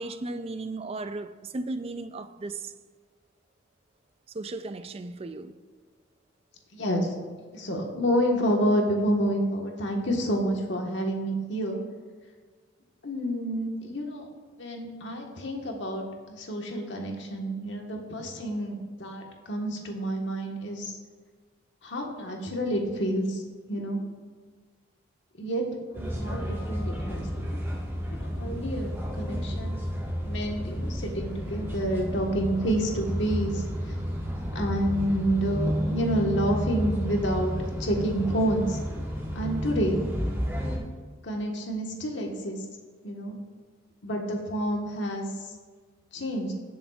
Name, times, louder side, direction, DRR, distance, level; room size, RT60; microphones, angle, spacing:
voice 1, 0.0-2.7 4.3-5.6, right 2 dB, 30° right, 0.4 m, -35 dB
voice 2, 6.7-11.8 13.0-14.3 14.6-21.0 21.8-23.4 23.7-24.0 25.4-25.6 25.9-27.7 28.1-29.9 30.2-33.6 34.5-38.8 39.3-40.0 41.2-42.6 43.0-43.4 44.0-45.3 46.1-46.5, equal, 60° left, 1.5 m, -29 dB
sound 1, 25.9-40.8, equal, 10° right, 1.6 m, -31 dB
18.0 x 7.0 x 2.5 m
head